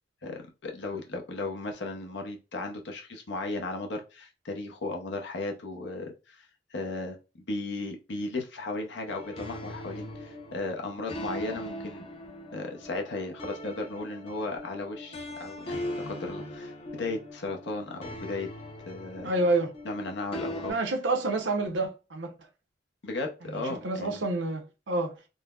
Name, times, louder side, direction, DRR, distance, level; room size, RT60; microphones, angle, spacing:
voice 1, 0.2-6.4 6.7-7.2 7.5-12.0 12.5-18.5 18.9-19.3 19.8-20.8 23.0-24.2, left 2 dB, 70° left, 0.7 m, -35 dB
sound 1, 9.1-20.7, left 1 dB, 30° left, 0.6 m, -40 dB
voice 2, 19.2-19.7 20.7-22.3 23.4-25.3, right 2 dB, 70° right, 0.7 m, -28 dB
3.8 x 2.0 x 2.3 m
head